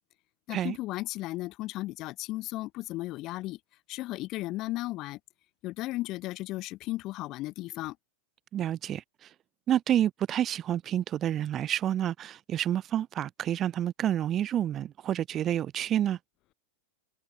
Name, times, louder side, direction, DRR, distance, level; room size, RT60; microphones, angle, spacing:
voice 1, 0.5-3.6 3.9-5.2 5.6-8.0, left 18 dB, 40° left, 3.8 m, -35 dB
voice 2, 8.5-9.3 9.7-16.2, right 11 dB, 30° right, 0.5 m, -29 dB
figure-of-eight pair, 90°, 0 cm